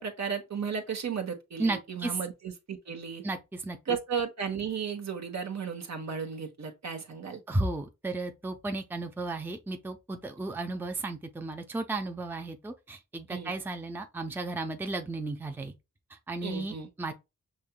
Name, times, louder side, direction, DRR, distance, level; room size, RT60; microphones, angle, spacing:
voice 1, 0.0-3.2 3.9-7.4 13.3-13.5 16.4-16.9, right 6 dB, 55° right, 1.0 m, -34 dB
voice 2, 1.6-2.2 3.2-4.0 7.5-15.7 16.1-17.1, right 2 dB, 5° right, 0.6 m, -34 dB
5.4 x 2.8 x 2.2 m
supercardioid pair, 40°, 33 cm